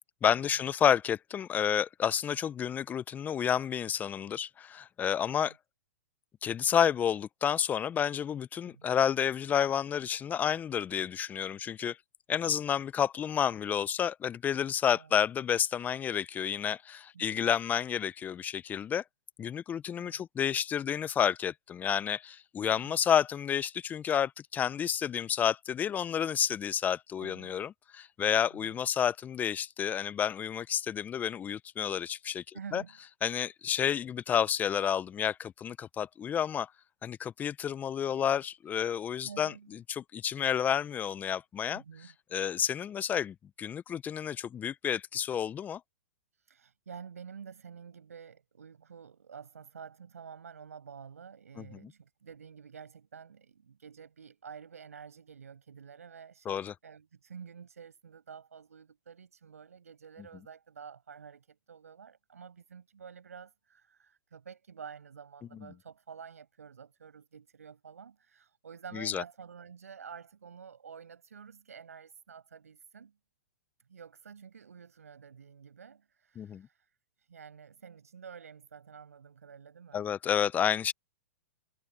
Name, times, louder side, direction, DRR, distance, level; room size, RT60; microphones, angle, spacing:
voice 1, 0.2-5.5 6.4-12.0 12.3-19.0 19.4-32.4 32.7-32.8 33.2-36.7 37.0-41.8 42.3-45.8 51.6-51.9 56.4-56.7 65.5-65.7 68.9-69.2 76.4-76.7 79.9-80.9, left 9 dB, 20° left, 0.9 m, -30 dB
voice 2, 8.7-9.0 14.9-15.1 17.1-17.5 20.0-20.3 22.7-23.0 27.2-27.6 28.5-28.8 32.5-33.1 38.1-38.4 39.2-39.8 41.7-42.2 46.3-73.1 73.9-80.0, right 6 dB, 80° right, 7.0 m, -49 dB
hypercardioid pair, 115°, 8 cm